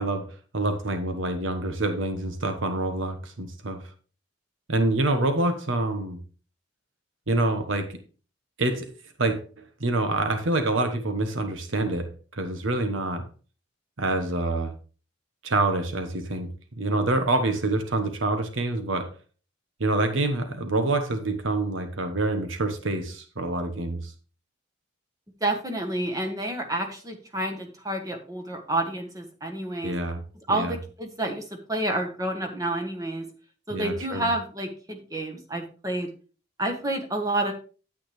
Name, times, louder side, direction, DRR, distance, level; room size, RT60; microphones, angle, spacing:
voice 1, 0.0-3.8 4.7-6.2 7.3-8.0 8.6-8.9 9.2-9.4 9.8-13.3 14.0-14.7 15.4-16.5 16.8-19.1 19.8-24.1 29.8-30.2 30.5-30.7 33.7-34.3, right 2 dB, 85° right, 7 dB, 1.2 m, -26 dB
voice 2, 25.4-29.9 30.5-33.3 33.7-36.1 36.6-37.5, right 1 dB, 20° right, 4 dB, 1.3 m, -29 dB
9.3 x 8.4 x 3.3 m, 0.36 s
head